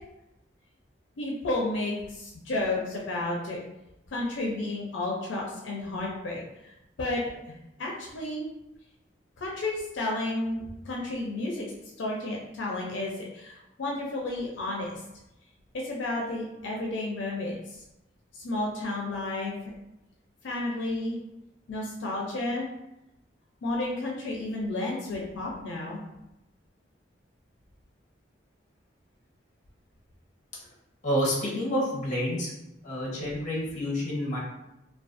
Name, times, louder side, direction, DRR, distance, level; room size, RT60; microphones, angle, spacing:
voice 1, 1.2-3.6 4.1-7.2 7.5-8.5 9.4-11.7 12.0-15.0 15.7-17.8 18.3-19.5 20.4-21.2 21.7-22.7 23.6-26.0, left 2 dB, 80° left, -2 dB, 0.4 m, -32 dB
voice 2, 31.0-32.5 32.8-34.4, equal, 40° left, -5 dB, 0.7 m, -28 dB
2.4 x 2.2 x 2.4 m, 0.90 s
head